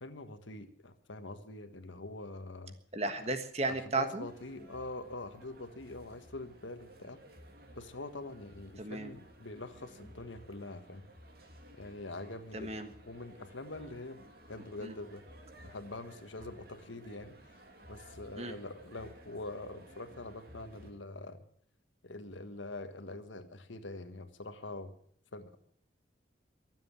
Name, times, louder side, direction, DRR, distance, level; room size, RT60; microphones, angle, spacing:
voice 1, 0.0-2.8 3.7-7.2 7.7-11.1 11.8-15.2 15.6-17.4 17.9-21.4 22.0-24.9 25.3-25.6, left 2 dB, 80° left, 9 dB, 1.5 m, -44 dB
voice 2, 2.9-4.3 8.8-9.1 12.5-12.9 14.8-14.9 18.4-18.5, right 2 dB, 35° right, 8 dB, 1.5 m, -34 dB
sound 1, 4.2-20.9, equal, 50° right, 2.9 m, -56 dB
23.0 x 7.8 x 7.4 m, 0.63 s
head